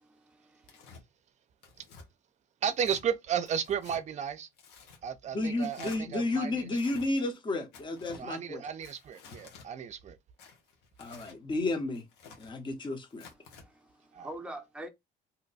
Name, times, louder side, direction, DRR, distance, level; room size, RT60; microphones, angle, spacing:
voice 1, 0.0-0.9 13.5-14.9, right 1 dB, 5° right, 0.6 m, -45 dB
Tearing, 0.7-1.0 1.6-2.1 2.7-3.0 3.5-4.0 4.6-5.0 5.6-6.0 6.7-7.1 7.7-8.2 8.8-9.7 10.4-11.4 11.9-12.5 13.1-13.7, left 5 dB, 90° left, 1.0 m, -51 dB
voice 2, 2.6-4.5 5.0-6.7 8.2-10.2 14.1-14.3, right 8 dB, 45° right, 0.5 m, -33 dB
voice 3, 5.3-8.6 11.0-12.0 12.4-13.3, left 2 dB, 30° left, 0.8 m, -32 dB
2.8 x 2.1 x 4.0 m
cardioid pair, 110°, 17 cm